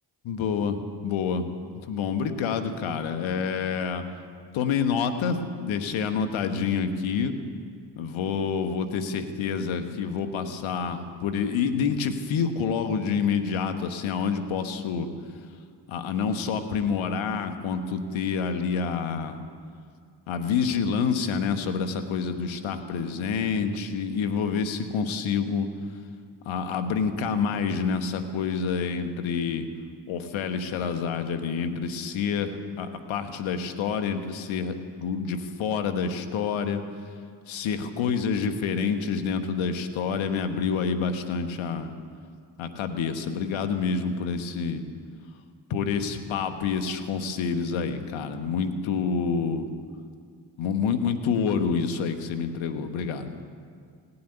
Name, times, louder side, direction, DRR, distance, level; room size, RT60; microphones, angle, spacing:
voice 1, 0.2-1.5 1.7-4.0 4.5-7.3 8.0-15.1 15.9-19.4 20.3-25.7 26.4-29.7 30.1-36.8 37.5-41.9 42.6-44.8 45.7-49.6 50.6-53.4, left 6 dB, 85° left, 8 dB, 1.3 m, -28 dB
17.0 x 8.5 x 9.8 m, 2.1 s
supercardioid pair, 50°, 46 cm